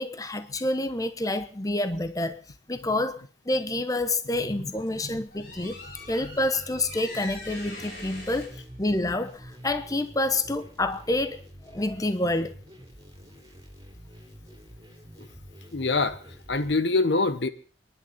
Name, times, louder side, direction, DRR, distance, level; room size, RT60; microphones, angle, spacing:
voice 1, 0.0-2.4 2.7-5.8 6.1-8.5 8.8-12.6, left 2 dB, 20° left, 1.0 m, -28 dB
sound 1, 4.6-9.7, left 2 dB, 55° left, 7.1 m, -44 dB
sound 2, 5.5-16.7, equal, 20° right, 3.6 m, -48 dB
voice 2, 15.7-16.2 16.5-17.5, left 3 dB, 70° left, 1.1 m, -25 dB
29.5 x 11.0 x 4.2 m
head